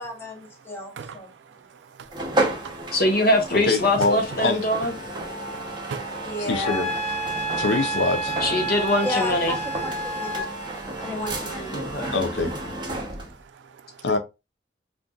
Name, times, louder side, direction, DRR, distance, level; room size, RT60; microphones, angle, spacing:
voice 1, 0.0-1.3 6.2-6.9 9.0-10.5 11.0-11.8, left 1 dB, 15° left, 0.8 m, -32 dB
voice 2, 1.0-2.9 5.3-6.2 7.3-7.6 12.9-14.0, right 6 dB, 90° right, 0.4 m, -43 dB
sound 1, 2.1-13.4, right 1 dB, 25° right, 0.7 m, -32 dB
voice 3, 2.9-4.9 8.4-9.5 11.7-12.1, left 1 dB, 60° left, 1.0 m, -22 dB
voice 4, 3.5-4.6 6.5-6.9 7.6-8.4 12.1-12.5 14.0-14.2, left 3 dB, 85° left, 0.5 m, -24 dB
Wind instrument woodwind instrument, 6.6-10.5, right 2 dB, 35° left, 0.4 m, -29 dB
3.8 x 2.5 x 2.3 m
head